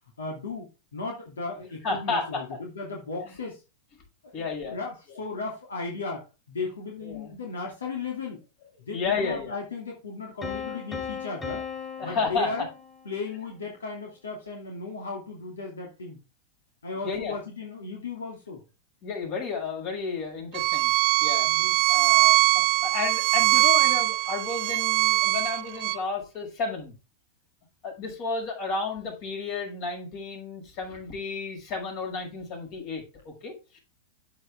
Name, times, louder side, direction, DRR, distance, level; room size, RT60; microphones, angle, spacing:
voice 1, 0.2-3.6 4.2-8.4 8.8-11.7 12.0-12.7 13.0-16.2 16.8-18.6 21.5-21.7, left 4 dB, 90° left, 0 dB, 2.7 m, -36 dB
voice 2, 1.8-2.4 3.3-3.4 4.3-4.8 7.0-7.3 8.9-9.6 12.0-12.7 17.0-17.3 19.0-20.9 21.2-21.5 21.9-26.9 27.8-33.8, left 4 dB, 50° left, 2 dB, 5.7 m, -32 dB
Piano, 10.4-13.3, left 6 dB, 20° left, 3.7 m, -37 dB
Bowed string instrument, 20.5-26.0, right 21 dB, 50° right, 1.2 m, -22 dB
8.5 x 8.1 x 3.6 m, 0.29 s
hypercardioid pair, 115°, 0 cm